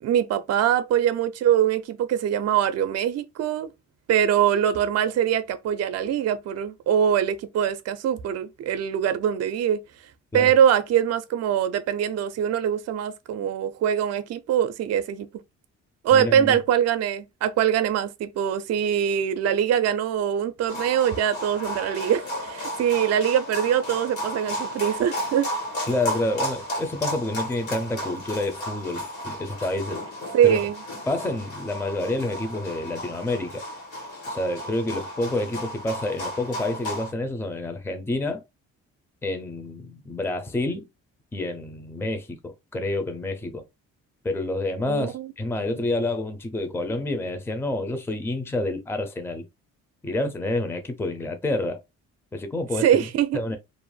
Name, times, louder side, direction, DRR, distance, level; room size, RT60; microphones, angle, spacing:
voice 1, 0.0-3.7 4.1-9.8 10.3-15.3 16.0-25.5 30.3-30.8 44.9-45.3 45.7-45.8 52.8-53.4, right 9 dB, 55° right, 0.5 m, -23 dB
voice 2, 16.1-16.6 25.9-30.0 30.4-30.6 31.1-33.6 34.3-38.4 39.2-40.9 41.3-43.6 44.2-49.4 50.0-51.8 52.3-53.1 53.3-53.6, left 2 dB, 10° left, 0.5 m, -28 dB
sound 1, 20.7-37.1, equal, 75° left, 1.5 m, -33 dB
2.5 x 2.0 x 3.1 m
cardioid pair, 90°, 30 cm